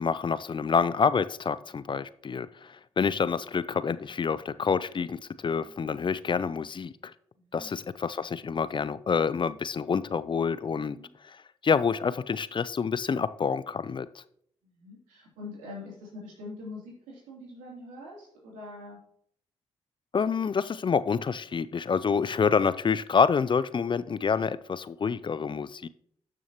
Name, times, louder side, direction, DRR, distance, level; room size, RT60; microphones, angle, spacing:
voice 1, 0.0-7.1 7.5-11.0 11.2-11.4 11.6-14.1 20.1-25.9, left 6 dB, 40° left, 0.4 m, -27 dB
voice 2, 7.4-7.8 10.9-11.1 14.6-19.0, left 2 dB, 85° right, 3.1 m, -44 dB
13.0 x 6.2 x 3.0 m
hypercardioid pair, 45°, 13 cm